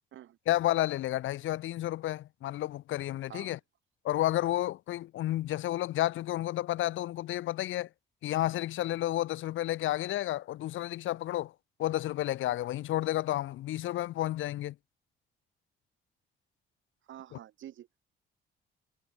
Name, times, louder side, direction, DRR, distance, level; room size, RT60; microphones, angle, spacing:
voice 1, 0.5-3.6 4.0-7.9 8.2-11.5 11.8-14.7, left 14 dB, 80° left, 1.4 m, -31 dB
voice 2, 17.1-18.0, right 12 dB, 75° right, 4.6 m, -48 dB
cardioid pair, 90°, 20 cm